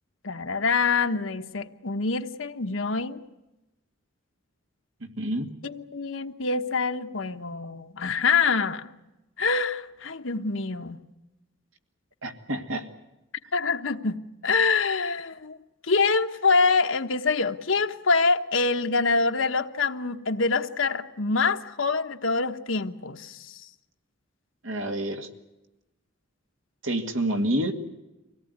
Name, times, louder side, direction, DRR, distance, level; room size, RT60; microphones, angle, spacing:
voice 1, 0.2-3.2 5.6-8.9 9.4-11.0 13.5-14.2 14.4-15.6 15.9-23.6, left 4 dB, 70° left, 7 dB, 1.2 m, -25 dB
voice 2, 5.0-5.5 12.2-12.9 24.6-25.3 26.8-27.7, right 1 dB, 75° right, 4 dB, 2.3 m, -28 dB
25.0 x 17.5 x 9.5 m, 1.0 s
head